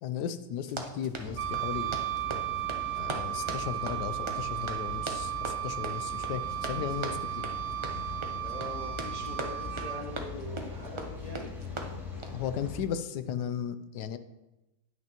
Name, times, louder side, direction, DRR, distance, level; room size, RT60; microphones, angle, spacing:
voice 1, 0.0-2.0 3.0-7.5 12.3-14.2, left 9 dB, 75° left, 12 dB, 1.2 m, -36 dB
Run, 0.6-12.4, right 2 dB, 35° right, 0.5 m, -41 dB
Rain, 1.1-12.8, left 3 dB, ahead, 2.3 m, -42 dB
Wind instrument woodwind instrument, 1.4-10.0, right 13 dB, 75° right, 1.2 m, -35 dB
voice 2, 8.4-11.5, left 1 dB, 30° left, -2 dB, 0.9 m, -42 dB
18.0 x 6.6 x 3.0 m, 1.0 s
omnidirectional pair, 1.8 m